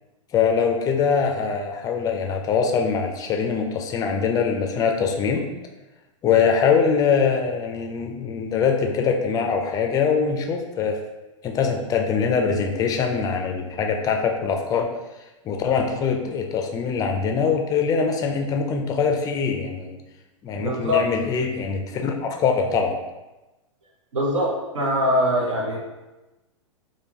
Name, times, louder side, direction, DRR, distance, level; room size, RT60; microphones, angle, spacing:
voice 1, 0.3-5.4 6.2-11.0 11.4-14.9 15.4-20.0 20.4-23.0, left 6 dB, 20° left, 3 dB, 0.4 m, -23 dB
voice 2, 20.6-21.0 24.1-24.5 24.7-25.8, left 1 dB, 75° right, -3 dB, 1.0 m, -22 dB
3.3 x 2.5 x 2.8 m, 1.1 s
figure-of-eight pair, 100°, 16 cm